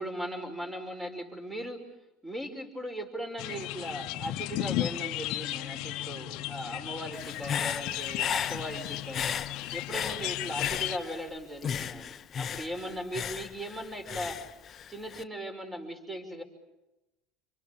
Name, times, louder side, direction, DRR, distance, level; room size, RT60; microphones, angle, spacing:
voice 1, 0.0-1.8 2.2-9.4 9.7-14.4 14.9-16.4, equal, 10° right, 5 dB, 5.5 m, -38 dB
sound 1, 3.4-11.0, left 15 dB, 60° left, 1.1 m, -35 dB
Human voice / Breathing, 7.1-11.3 11.6-15.2, left 8 dB, 35° left, 0.9 m, -35 dB
27.5 x 24.5 x 7.0 m, 0.95 s
supercardioid pair, 120°, 0 cm